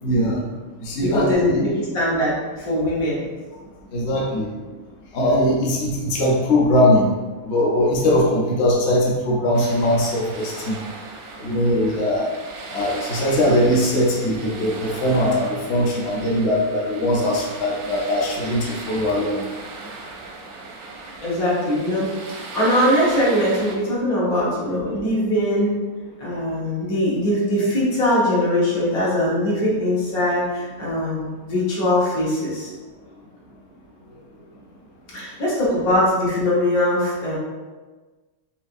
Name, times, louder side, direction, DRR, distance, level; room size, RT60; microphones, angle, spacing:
voice 1, 0.0-0.4 0.8-1.7 3.9-4.5 5.1-7.1 7.4-10.8 11.4-12.3 12.7-19.4, left 1 dB, 55° left, -3 dB, 0.9 m, -20 dB
voice 2, 1.0-3.3 21.2-22.1 22.5-25.8 26.2-32.7 35.1-37.4, left 1 dB, 75° left, -7 dB, 1.7 m, -21 dB
sound 1, 9.5-23.8, right 3 dB, 85° right, 1.1 m, -37 dB
5.0 x 2.8 x 2.5 m, 1.3 s
omnidirectional pair, 1.5 m